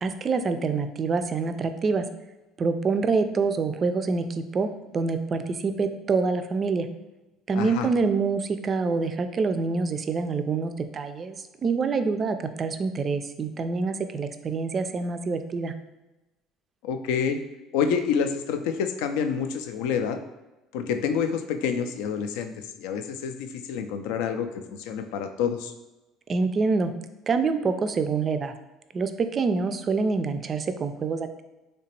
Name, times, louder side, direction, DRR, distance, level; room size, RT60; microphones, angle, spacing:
voice 1, 0.0-2.0 2.6-4.7 4.9-6.9 7.5-15.7 26.3-26.9 27.3-28.5 28.9-31.4, right 4 dB, 40° right, 8 dB, 0.3 m, -26 dB
voice 2, 7.5-7.9 16.8-17.4 17.7-20.2 20.7-25.7, left 7 dB, 70° left, 7 dB, 0.3 m, -28 dB
3.2 x 2.8 x 2.9 m, 1.0 s
hypercardioid pair, 65°, 0 cm